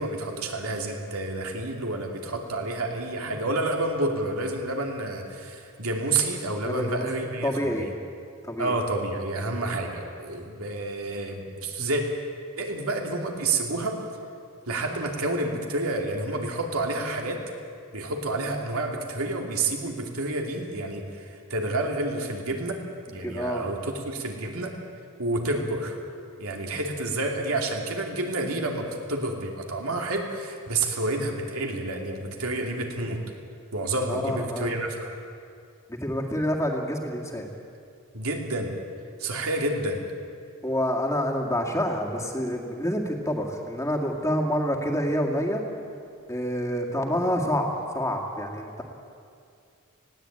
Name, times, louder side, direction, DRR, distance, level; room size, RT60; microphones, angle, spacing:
voice 1, 0.0-7.9 8.6-12.0 12.6-14.0 14.7-17.4 17.9-22.8 23.1-24.7 25.2-26.0 26.4-33.2 33.7-35.1 38.1-38.7 39.2-40.0, right 2 dB, 80° right, 2 dB, 2.7 m, -29 dB
voice 2, 6.7-7.1 7.4-7.9 8.4-8.8 23.2-23.6 34.1-34.8 35.9-37.5 40.6-45.6 46.3-48.8, equal, 15° left, 1 dB, 2.1 m, -27 dB
20.0 x 16.5 x 8.9 m, 2.4 s
head